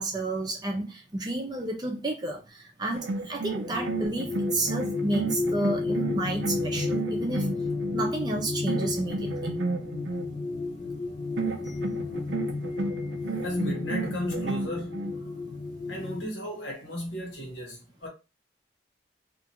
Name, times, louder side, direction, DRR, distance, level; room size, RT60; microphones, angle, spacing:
voice 1, 0.0-7.5 7.9-9.5 11.6-11.8 12.7-13.2, right 2 dB, 25° right, 0.5 m, -31 dB
sound 1, 2.9-8.1 8.7-10.3 11.4-15.2, right 3 dB, 85° right, 0.4 m, -33 dB
sound 2, 3.5-16.3, left 3 dB, 40° left, 0.4 m, -32 dB
voice 2, 13.4-15.1 15.9-18.1, equal, 90° left, 1.2 m, -34 dB
2.8 x 2.3 x 2.8 m
head